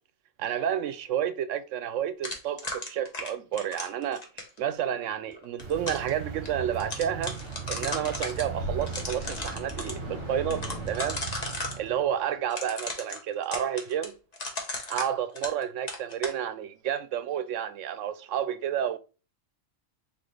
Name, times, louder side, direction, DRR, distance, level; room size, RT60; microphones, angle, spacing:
voice 1, 0.4-4.2 4.6-7.4 7.7-11.2 11.8-14.2 14.9-19.0, right 9 dB, 80° right, 0.9 m, -30 dB
sound 1, 2.2-4.6 5.4-6.1 6.5-6.6 6.8-8.4 8.8-9.9 10.5-11.8 12.5-15.6 15.9-16.4, left 2 dB, 35° left, 1.0 m, -35 dB
sound 2, 5.6-10.9, left 2 dB, 65° left, 1.6 m, -42 dB
sound 3, 5.6-12.4, right 7 dB, 55° right, 1.0 m, -39 dB
4.0 x 3.7 x 3.2 m
omnidirectional pair, 1.3 m